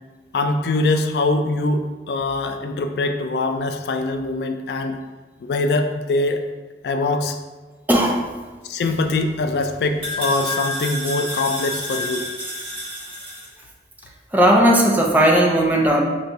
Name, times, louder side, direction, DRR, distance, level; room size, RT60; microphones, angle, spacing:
voice 1, 0.3-5.0 5.4-6.4 6.8-7.4 8.6-12.3, left 2 dB, 65° left, 6 dB, 0.3 m, -23 dB
voice 2, 7.9-8.3 14.3-16.0, right 1 dB, 10° right, 0 dB, 0.4 m, -16 dB
sound 1, 8.9-13.5, left 1 dB, 30° right, 1.4 m, -30 dB
3.3 x 2.6 x 4.1 m, 1.3 s
head